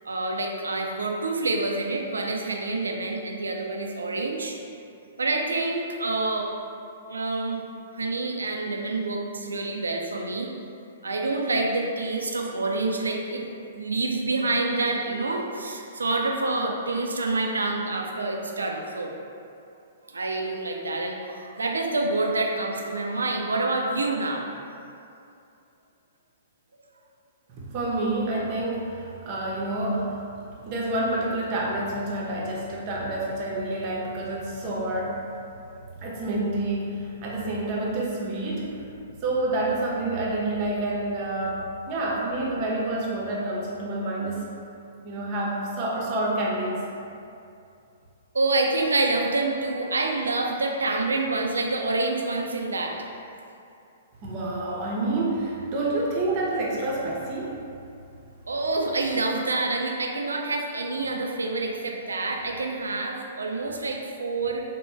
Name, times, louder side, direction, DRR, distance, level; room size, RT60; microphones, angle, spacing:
voice 1, 0.1-4.6 5.2-6.5 7.1-7.6 8.0-10.5 11.0-13.5 13.8-19.1 20.1-24.5 48.3-53.0 58.5-64.6, right 2 dB, 75° right, 1 dB, 0.4 m, -27 dB
voice 2, 27.5-30.2 30.6-35.3 36.0-38.9 39.2-44.5 45.0-46.8 54.2-57.6, right 2 dB, 35° right, -4 dB, 0.6 m, -28 dB
3.3 x 2.2 x 3.1 m, 2.6 s
figure-of-eight pair, 115°, 0 cm